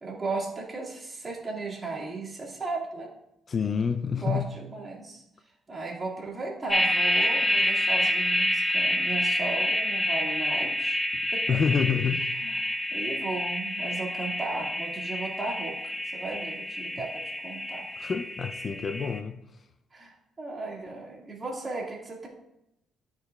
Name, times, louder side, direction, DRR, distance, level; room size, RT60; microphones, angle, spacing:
voice 1, 0.0-3.1 4.1-5.2 5.7-11.0 11.3-11.6 12.2-17.9 19.9-22.3, right 3 dB, 30° right, 1.9 m, -36 dB
voice 2, 3.5-4.5 11.1-11.2 11.5-12.3 18.0-19.4, left 6 dB, 45° left, 0.4 m, -27 dB
sound 1, 6.7-19.2, left 1 dB, 10° left, 0.9 m, -28 dB
11.5 x 4.4 x 2.3 m
cardioid pair, 90°, 0 cm